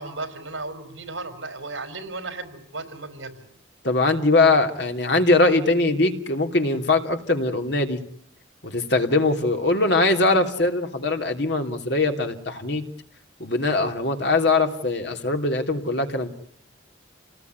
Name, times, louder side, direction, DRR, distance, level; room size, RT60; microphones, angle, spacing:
voice 1, 0.0-3.5 9.2-9.4, right 3 dB, 75° right, 11 dB, 4.4 m, -35 dB
voice 2, 3.8-8.0 8.6-12.8 13.4-16.3, left 2 dB, 60° left, 5 dB, 3.1 m, -21 dB
28.5 x 19.5 x 9.6 m, 0.64 s
head